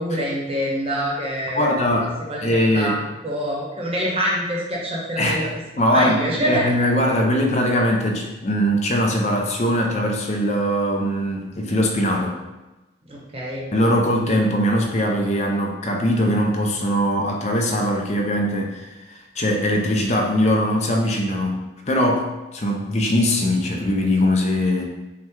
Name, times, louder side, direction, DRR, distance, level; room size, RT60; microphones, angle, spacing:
voice 1, 0.0-3.0 3.2-6.7 13.1-13.7, equal, 30° right, -4 dB, 0.9 m, -26 dB
voice 2, 1.5-2.1 2.4-2.9 5.2-5.4 5.8-12.4 13.7-18.8 19.1-24.8, equal, 35° left, 1 dB, 0.5 m, -21 dB
5.6 x 2.2 x 3.6 m, 1.0 s
head